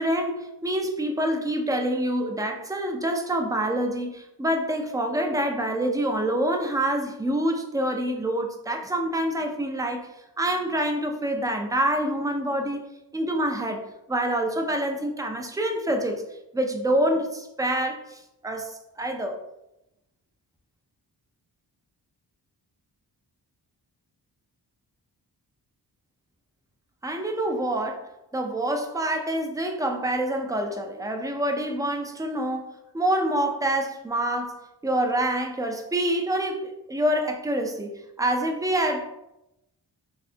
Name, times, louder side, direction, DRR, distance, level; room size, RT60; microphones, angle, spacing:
voice 1, 0.0-10.1 10.4-12.8 13.1-13.8 14.1-16.2 16.5-19.4 27.0-39.1, right 1 dB, 10° right, 3 dB, 0.4 m, -26 dB
4.1 x 2.7 x 2.7 m, 0.89 s
wide cardioid pair, 110°, 41 cm